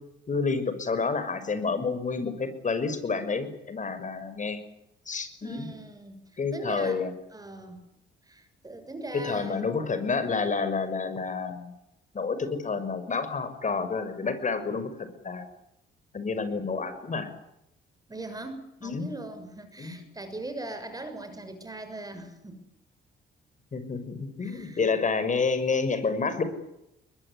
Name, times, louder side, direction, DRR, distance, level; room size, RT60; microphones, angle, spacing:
voice 1, 0.3-4.6 5.1-5.7 6.4-7.1 9.1-11.7 12.1-15.5 16.1-17.3 18.8-19.1 19.8-19.9 23.7-26.4, left 4 dB, 40° left, 11 dB, 6.2 m, -29 dB
voice 2, 5.4-7.0 7.3-7.8 8.2-9.6 18.1-22.6 24.4-24.9, right 2 dB, 20° right, 8 dB, 6.5 m, -40 dB
22.5 x 22.0 x 9.8 m, 0.86 s
cardioid pair, 90°, 20 cm